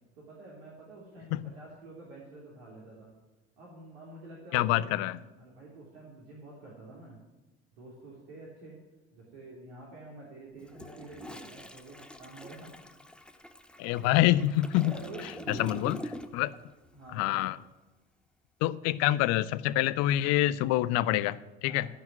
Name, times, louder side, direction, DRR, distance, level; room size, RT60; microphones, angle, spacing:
voice 1, 0.1-3.1 3.6-7.2 7.8-8.8 9.1-12.7 14.7-15.8 16.3-16.4 16.9-17.4 21.6-21.9, right 2 dB, 65° right, -4 dB, 3.1 m, -48 dB
voice 2, 4.5-5.2 13.8-15.0 15.5-16.0 16.3-16.5 17.1-17.6 18.6-21.9, left 15 dB, 50° left, 17 dB, 0.6 m, -26 dB
Toilet flush, 10.6-16.6 16.8-17.1, left 1 dB, 5° left, 0.9 m, -45 dB
15.0 x 5.9 x 9.3 m, 1.1 s
figure-of-eight pair, 60°, 33 cm